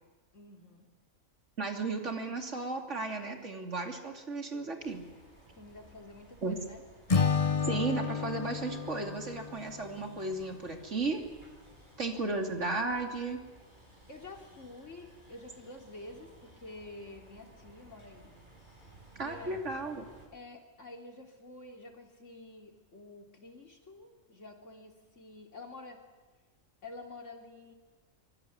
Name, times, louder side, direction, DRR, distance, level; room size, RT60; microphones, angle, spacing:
voice 1, 0.3-0.9 5.6-6.8 14.1-18.3 18.8-18.9 19.2-19.6 20.3-26.0 26.8-27.7, left 2 dB, 65° left, 2 dB, 3.9 m, -49 dB
voice 2, 1.6-5.0 6.4-6.6 7.6-11.2 12.0-13.4 19.2-20.1, right 3 dB, 60° right, 3 dB, 3.1 m, -34 dB
sound 1, 4.8-20.3, right 1 dB, 35° right, 7.0 m, -57 dB
Acoustic guitar / Strum, 7.1-10.4, left 5 dB, 30° left, 0.8 m, -31 dB
24.0 x 23.0 x 9.5 m, 1.3 s
omnidirectional pair, 1.4 m